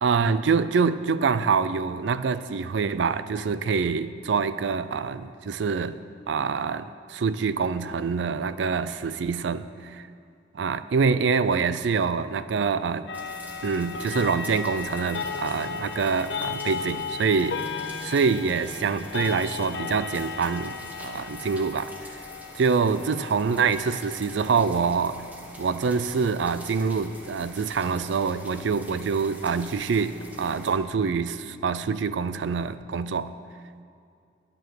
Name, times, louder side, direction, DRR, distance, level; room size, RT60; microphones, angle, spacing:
voice 1, 0.0-6.0 6.3-10.1 10.5-13.1 13.6-17.6 18.0-21.9 22.5-25.2 25.6-33.3, right 5 dB, 75° right, 14 dB, 0.4 m, -25 dB
sound 1, 13.1-30.3, left 5 dB, 70° left, 0.6 m, -37 dB
sound 2, 13.1-30.8, right 1 dB, 10° right, 1.1 m, -46 dB
9.6 x 9.5 x 6.1 m, 2.4 s
head